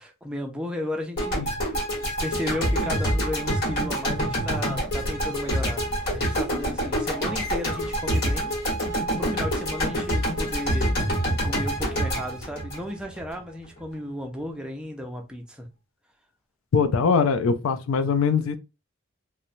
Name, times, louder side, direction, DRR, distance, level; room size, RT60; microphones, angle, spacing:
voice 1, 0.0-1.7 2.2-8.5 9.2-10.9 11.4-15.7, left 1 dB, 5° right, 0.5 m, -34 dB
sound 1, 1.2-13.4, equal, 55° left, 1.2 m, -26 dB
voice 2, 16.7-18.6, left 5 dB, 85° left, 0.4 m, -22 dB
3.0 x 2.1 x 2.5 m
head